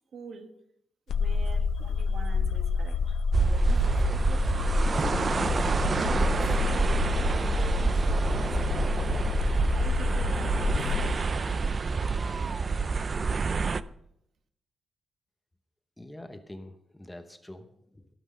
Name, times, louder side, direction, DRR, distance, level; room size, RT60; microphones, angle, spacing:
voice 1, 0.1-0.5 1.1-3.2 3.5-4.9 5.8-9.1 9.3-12.1, right 5 dB, 65° right, 6 dB, 1.7 m, -46 dB
sound 1, 1.1-11.1, left 5 dB, 75° left, 0.7 m, -29 dB
sound 2, 3.3-13.8, right 4 dB, 35° right, 0.4 m, -27 dB
voice 2, 16.0-18.1, left 1 dB, 10° left, 8 dB, 1.0 m, -45 dB
17.5 x 6.1 x 6.2 m, 0.74 s
wide cardioid pair, 140°, 0 cm